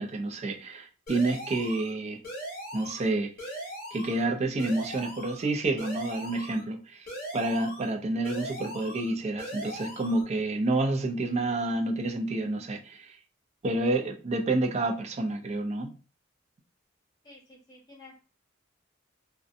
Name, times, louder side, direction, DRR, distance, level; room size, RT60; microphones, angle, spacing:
voice 1, 0.0-2.2 2.7-3.3 3.9-7.1 7.3-13.1 13.6-15.9, right 2 dB, 35° right, 3 dB, 0.4 m, -29 dB
sound 1, 1.1-1.9 2.2-3.1 3.4-4.2 4.6-5.4 5.8-6.6 7.1-7.9 8.2-9.1 9.4-10.2, equal, 50° left, 1.2 m, -40 dB
voice 2, 17.2-18.2, left 2 dB, 20° left, -4 dB, 1.3 m, -52 dB
2.6 x 2.1 x 2.5 m, 0.36 s
head